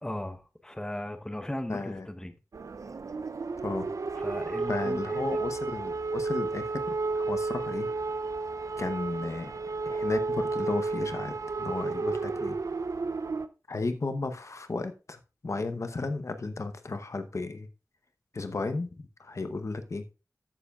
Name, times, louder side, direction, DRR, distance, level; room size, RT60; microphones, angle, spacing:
voice 1, 0.0-2.3 4.2-5.4, left 1 dB, 10° left, 0.9 m, -37 dB
voice 2, 1.7-2.1 3.6-3.9 4.7-7.9 8.8-9.5 9.8-12.6 13.7-17.7 18.3-20.0, left 3 dB, 60° left, 0.8 m, -34 dB
sound 1, 2.5-13.5, right 3 dB, 70° right, 0.5 m, -32 dB
14.0 x 6.9 x 2.4 m
wide cardioid pair, 70°, 6 cm